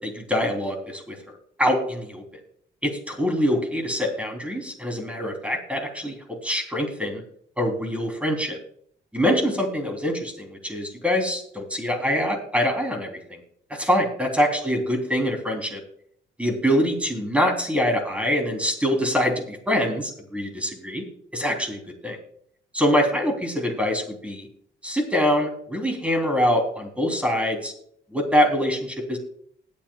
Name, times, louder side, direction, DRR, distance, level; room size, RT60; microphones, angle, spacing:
voice 1, 0.0-1.2 1.6-2.2 2.8-7.2 7.6-8.6 9.1-13.4 13.7-15.8 16.4-21.0 21.3-22.2 22.7-24.5 24.8-27.7 28.1-29.2, equal, 5° right, 3 dB, 3.3 m, -24 dB
19.5 x 8.6 x 2.3 m, 0.64 s
cardioid pair, 90°, 20 cm